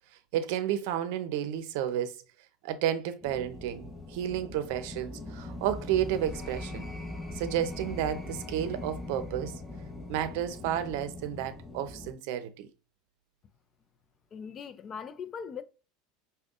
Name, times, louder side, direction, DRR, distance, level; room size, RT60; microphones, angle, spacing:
voice 1, 0.3-2.2 2.6-6.8 7.3-9.6 10.1-12.7, right 10 dB, 70° right, 0.6 m, -31 dB
sound 1, 3.2-12.1, left 2 dB, 10° left, 1.0 m, -41 dB
voice 2, 14.3-15.6, left 6 dB, 35° left, 0.5 m, -40 dB
5.2 x 2.2 x 2.5 m
supercardioid pair, 110°, 0 cm